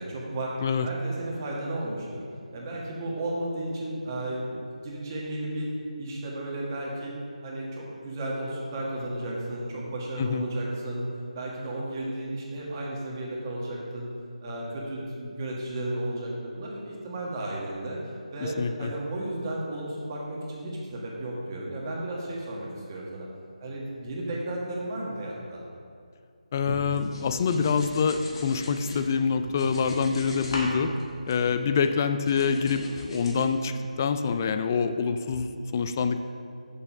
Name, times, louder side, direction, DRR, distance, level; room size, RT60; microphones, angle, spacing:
voice 1, 0.0-0.6 0.8-2.2 2.5-5.7 6.0-7.1 7.4-11.0 11.3-14.1 14.4-23.3 23.6-25.6 31.6-31.7, right 1 dB, 25° right, -3 dB, 1.5 m, -34 dB
voice 2, 18.4-18.9 26.5-30.9 31.3-36.2, left 5 dB, 25° left, 9 dB, 0.3 m, -26 dB
sound 1, 26.7-29.0 29.4-30.7 31.0-31.9 32.3-33.5, left 1 dB, 40° left, 1.4 m, -38 dB
6.8 x 5.6 x 5.5 m, 2.3 s
figure-of-eight pair, 165°, 4 cm